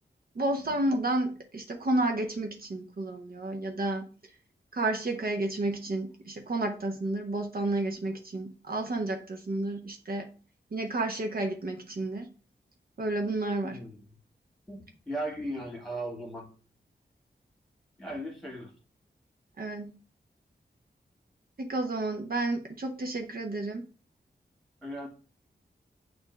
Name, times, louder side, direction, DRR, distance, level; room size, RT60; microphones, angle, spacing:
voice 1, 0.3-4.1 4.7-10.3 10.7-12.3 13.0-13.8 19.6-19.9 21.6-23.8, right 2 dB, 55° right, 0.9 m, -31 dB
voice 2, 13.6-14.0 14.7-16.5 18.0-18.7 24.8-25.1, right 1 dB, ahead, 2.0 m, -37 dB
6.9 x 2.6 x 5.2 m
wide cardioid pair, 80°, 18 cm